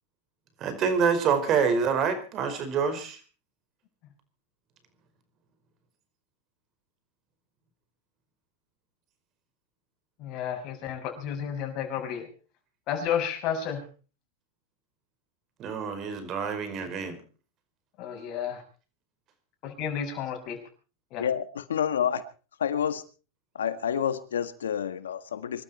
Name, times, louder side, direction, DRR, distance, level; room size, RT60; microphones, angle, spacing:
voice 1, 0.6-3.2 15.6-17.2, right 6 dB, 40° right, 10 dB, 5.0 m, -26 dB
voice 2, 10.2-12.3 12.9-13.8 18.0-18.6 19.6-20.6 21.1-21.2, left 8 dB, 45° left, 4 dB, 6.6 m, -31 dB
voice 3, 21.2-22.2 22.6-23.0 23.6-25.6, left 8 dB, 90° left, 11 dB, 1.8 m, -28 dB
25.0 x 13.0 x 4.4 m, 0.38 s
hypercardioid pair, 115°, 0 cm